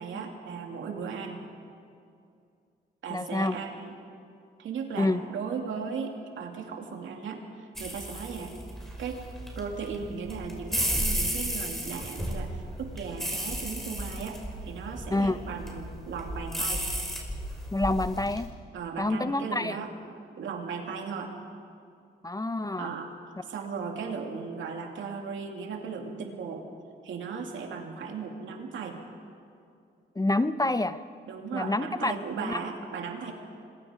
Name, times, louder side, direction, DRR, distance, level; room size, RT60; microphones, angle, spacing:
voice 1, 0.0-1.5 3.0-4.0 4.6-8.6 9.0-9.2 9.5-16.8 18.7-19.9 20.4-21.3 22.8-23.1 23.4-26.6 27.0-29.0 31.3-33.3, right 5 dB, 80° right, 2 dB, 2.7 m, -36 dB
voice 2, 3.1-3.6 5.0-5.2 15.1-15.4 17.7-18.5 19.0-19.8 22.2-22.9 30.2-31.0 31.5-32.6, left 2 dB, 20° left, 12 dB, 0.8 m, -27 dB
sound 1, 7.7-18.4, equal, ahead, 5.5 m, -34 dB
26.5 x 21.5 x 5.1 m, 2.5 s
cardioid pair, 65°, 20 cm